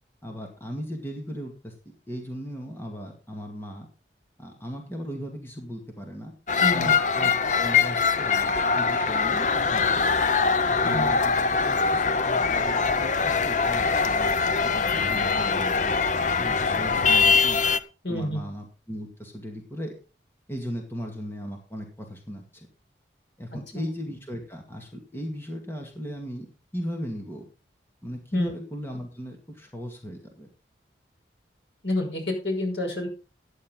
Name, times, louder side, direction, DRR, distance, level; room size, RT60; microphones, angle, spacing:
voice 1, 0.2-1.7 2.1-3.9 4.4-6.3 6.7-7.3 7.6-10.0 10.7-14.4 14.6-16.0 16.3-17.6 18.1-19.9 20.5-22.7 23.4-26.5 26.7-27.5 28.0-30.5, equal, 15° left, 2 dB, 2.2 m, -37 dB
sound 1, 6.5-17.8, left 5 dB, 40° left, 0.6 m, -23 dB
voice 2, 6.6-6.9 10.8-11.1 18.0-18.5 23.5-23.8 28.3-28.5 31.8-33.1, left 1 dB, 80° left, 2 dB, 5.8 m, -29 dB
14.0 x 9.5 x 3.9 m, 0.33 s
head